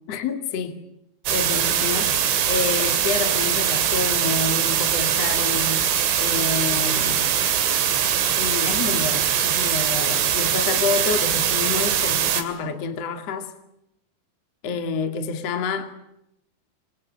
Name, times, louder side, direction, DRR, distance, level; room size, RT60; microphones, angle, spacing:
voice 1, 0.1-0.7 1.3-2.1 2.5-5.8 6.2-7.4 8.3-13.5 14.6-15.9, left 5 dB, 40° left, 2.7 m, -28 dB
sound 1, 1.3-12.4, right 9 dB, 85° right, 5.2 m, -22 dB
27.5 x 27.5 x 7.6 m
omnidirectional pair, 5.5 m